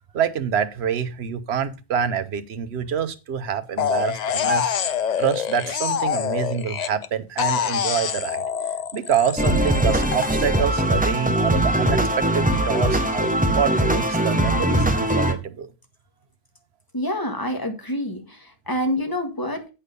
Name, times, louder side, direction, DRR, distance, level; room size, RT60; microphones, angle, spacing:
voice 1, 0.1-4.9 5.2-8.4 8.9-15.7, right 8 dB, 60° right, 1.1 m, -26 dB
sound 1, 3.8-7.1 7.4-10.3, left 8 dB, 60° left, 0.4 m, -25 dB
sound 2, 9.4-15.3, right 1 dB, 5° right, 1.0 m, -21 dB
voice 2, 16.9-19.7, left 1 dB, 20° left, 1.5 m, -27 dB
8.4 x 5.7 x 5.2 m
omnidirectional pair, 1.3 m